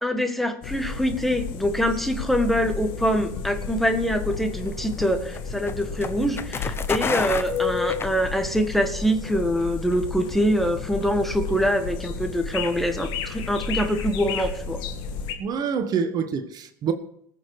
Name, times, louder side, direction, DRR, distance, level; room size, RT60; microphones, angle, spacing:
voice 1, 0.0-14.8, equal, ahead, 1.6 m, -24 dB
sound 1, 0.6-15.4, left 5 dB, 55° left, 2.0 m, -32 dB
sound 2, 4.3-8.7, left 5 dB, 25° left, 0.9 m, -31 dB
voice 2, 15.4-16.9, right 6 dB, 45° right, 1.3 m, -26 dB
19.5 x 6.8 x 4.8 m
hypercardioid pair, 80°, 9 cm